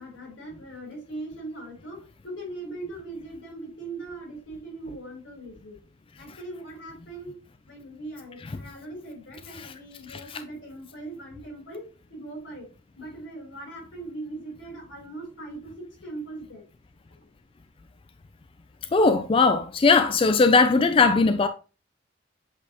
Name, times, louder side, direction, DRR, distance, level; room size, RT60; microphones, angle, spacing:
voice 1, 0.0-5.8 6.2-7.3 7.7-12.7 13.0-16.6, right 2 dB, 90° left, 3.6 m, -40 dB
voice 2, 10.1-10.4 18.9-21.5, left 4 dB, 30° left, 0.4 m, -20 dB
7.9 x 4.1 x 2.9 m
head